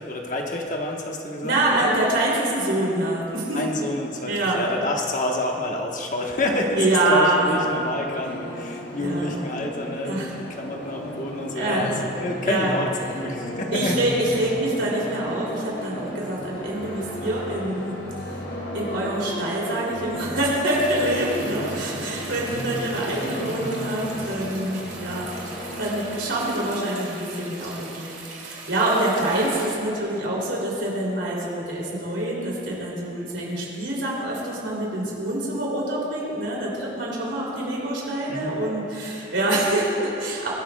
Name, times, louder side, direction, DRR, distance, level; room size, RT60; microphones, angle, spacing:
voice 1, 0.0-1.9 3.5-11.9 12.2-14.0 38.3-38.5, left 1 dB, 45° left, 0 dB, 1.2 m, -28 dB
voice 2, 1.4-3.6 4.3-4.6 6.8-7.6 9.0-9.4 10.0-10.3 11.5-11.9 12.4-12.7 13.7-18.0 18.3-18.4 18.7-25.3 25.5-40.5, right 1 dB, 80° right, -5 dB, 3.0 m, -25 dB
sound 1, 7.2-26.8, equal, 75° left, 2.2 m, -34 dB
sound 2, 20.6-29.7, right 3 dB, 45° right, 2.2 m, -40 dB
24.0 x 9.8 x 2.3 m, 2.8 s
head